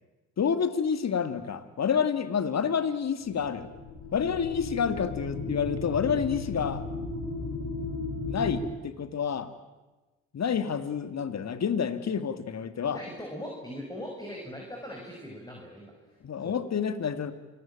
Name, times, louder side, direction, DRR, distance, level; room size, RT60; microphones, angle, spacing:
voice 1, 0.4-3.7 4.1-6.8 7.8-7.9 8.3-9.5 10.3-13.0 16.2-17.3, left 7 dB, 50° left, 12 dB, 2.2 m, -28 dB
sound 1, 3.2-8.6, left 3 dB, 70° left, 6.0 m, -35 dB
voice 2, 12.8-15.9 16.4-16.6, equal, 10° left, -1 dB, 7.0 m, -40 dB
27.5 x 19.0 x 8.9 m, 1.2 s
hypercardioid pair, 45°, 34 cm